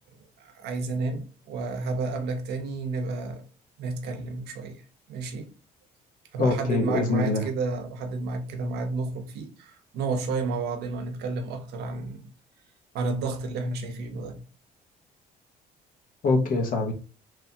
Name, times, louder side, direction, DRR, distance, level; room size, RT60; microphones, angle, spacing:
voice 1, 0.4-3.4 3.8-4.8 5.1-5.5 6.3-12.3 12.9-14.4, right 3 dB, 75° right, 0.6 m, -31 dB
voice 2, 6.4-7.4 16.2-16.9, left 3 dB, 55° left, 0.8 m, -24 dB
3.1 x 2.2 x 2.7 m
cardioid pair, 110°, 17 cm